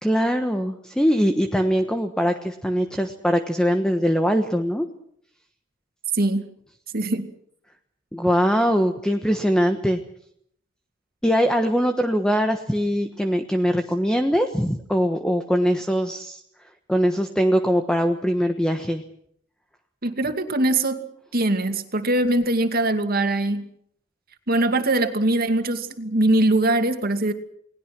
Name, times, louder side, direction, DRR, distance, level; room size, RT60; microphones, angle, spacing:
voice 1, 0.0-4.9 8.1-10.0 11.2-16.4 16.9-19.0, equal, 5° left, 6 dB, 1.3 m, -22 dB
voice 2, 6.9-7.3 20.0-21.0 21.3-23.7 24.5-27.3, right 2 dB, 50° right, 7 dB, 2.4 m, -22 dB
30.0 x 19.5 x 6.1 m, 0.68 s
head